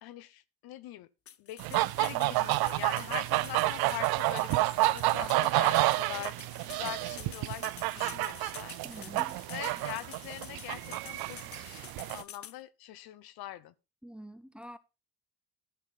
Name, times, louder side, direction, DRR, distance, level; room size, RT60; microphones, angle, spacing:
voice 1, 0.0-1.1 1.4-9.2 9.5-13.7, left 14 dB, 85° left, 0.8 m, -43 dB
sound 1, 1.3-12.6, left 10 dB, 40° left, 0.6 m, -49 dB
sound 2, 1.6-12.2, right 19 dB, 85° right, 0.5 m, -30 dB
voice 2, 8.8-9.4 14.0-14.8, equal, 5° right, 0.6 m, -46 dB
12.0 x 5.5 x 4.1 m
cardioid pair, 85°, 36 cm